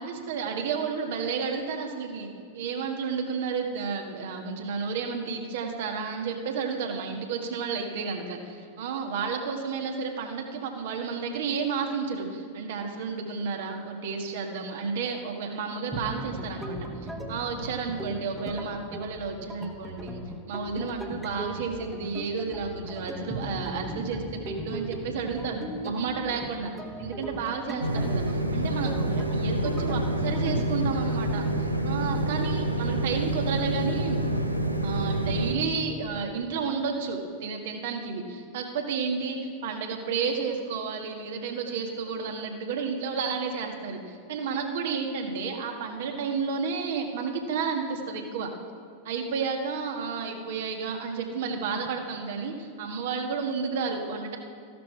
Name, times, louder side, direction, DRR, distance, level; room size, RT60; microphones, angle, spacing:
voice 1, 0.0-2.3 2.5-20.2 20.5-26.7 27.0-34.2 34.8-48.5 49.0-54.4, right 5 dB, 55° right, 3 dB, 1.7 m, -31 dB
sound 1, 15.9-30.7, right 1 dB, 5° right, 1.4 m, -38 dB
sound 2, 27.8-35.5, right 1 dB, 90° right, 0.9 m, -27 dB
14.5 x 12.0 x 4.8 m, 2.3 s
figure-of-eight pair, 90°, 0 cm